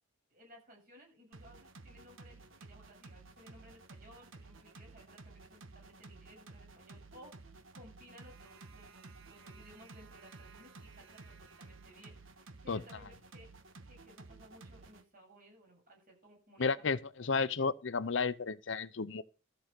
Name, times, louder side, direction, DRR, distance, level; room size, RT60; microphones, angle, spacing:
voice 1, 0.3-13.5 13.9-17.0 17.5-17.7, equal, 45° right, 7.6 m, -59 dB
sound 1, 1.3-15.0, right 3 dB, 75° right, 1.3 m, -54 dB
voice 2, 16.6-19.2, left 4 dB, 65° left, 0.7 m, -32 dB
13.5 x 6.5 x 5.8 m
head